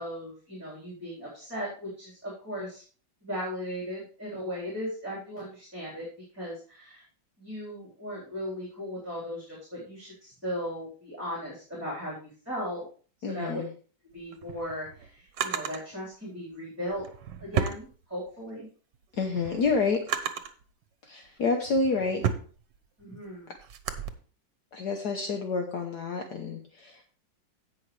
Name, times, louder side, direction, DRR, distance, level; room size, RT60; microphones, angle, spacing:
voice 1, 0.0-2.8 3.2-6.1 6.3-7.0 7.4-12.8 13.2-13.6 14.1-17.0 17.4-18.7 23.0-23.5, equal, 10° right, -7 dB, 3.9 m, -37 dB
voice 2, 13.2-13.7 19.1-20.0 21.1-22.2 24.7-27.0, left 4 dB, 60° left, 4 dB, 1.5 m, -28 dB
Drawer open or close, 14.2-15.8 16.9-18.5 18.9-20.6 21.3-24.1, right 8 dB, 70° right, 1.5 m, -34 dB
16.5 x 5.7 x 3.3 m, 0.40 s
omnidirectional pair, 2.0 m